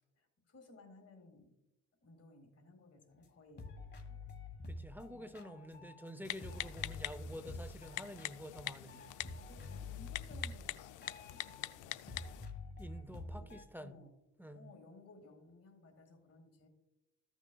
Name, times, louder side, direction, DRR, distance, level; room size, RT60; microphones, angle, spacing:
voice 1, 0.1-1.6 2.0-4.2 5.1-5.8 9.5-12.2 13.1-13.5 13.8-14.2 14.5-16.7, left 2 dB, 50° left, 5 dB, 2.1 m, -60 dB
sound 1, 3.2-3.3 3.6-6.2 6.4-11.8 12.1-13.6, left 2 dB, 35° left, 1.5 m, -48 dB
voice 2, 4.6-9.1 12.8-14.0 14.4-14.7, equal, 5° right, 9 dB, 0.6 m, -49 dB
Typing, 6.2-12.5, left 15 dB, 80° left, 0.5 m, -45 dB
14.5 x 6.1 x 2.3 m, 0.93 s
cardioid pair, 90°, 30 cm